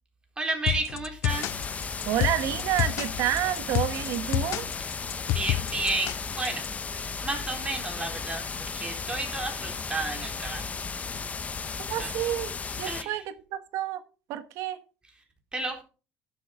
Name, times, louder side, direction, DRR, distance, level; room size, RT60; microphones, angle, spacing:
voice 1, 0.4-1.6 5.3-6.7 6.9-8.5 8.7-10.6 12.0-12.1 12.9-13.2 15.5-15.8, right 2 dB, 15° right, 3.9 m, -32 dB
sound 1, 0.7-6.7, left 15 dB, 65° left, 0.4 m, -29 dB
sound 2, 1.3-13.0, left 5 dB, 25° left, 0.9 m, -35 dB
voice 2, 2.0-4.7 11.9-12.5 12.8-14.0 14.3-14.8, right 12 dB, 70° right, 1.3 m, -29 dB
12.0 x 7.8 x 3.7 m
cardioid pair, 115°, 5 cm